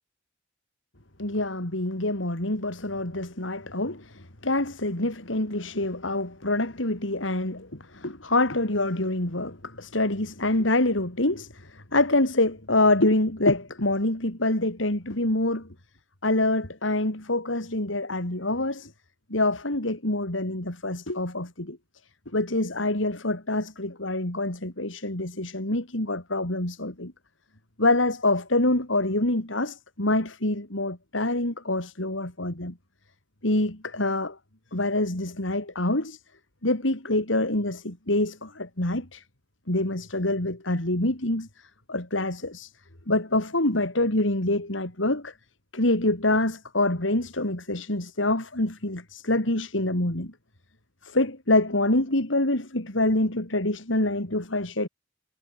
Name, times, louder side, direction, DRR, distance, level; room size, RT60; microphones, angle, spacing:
voice 1, 1.2-15.7 16.2-18.9 19.3-21.8 22.3-27.1 27.8-32.8 33.4-34.4 34.7-36.2 36.6-39.2 39.7-42.7 43.1-45.3 45.7-50.3 51.0-54.9, left 2 dB, 75° left, 4.0 m, -26 dB
head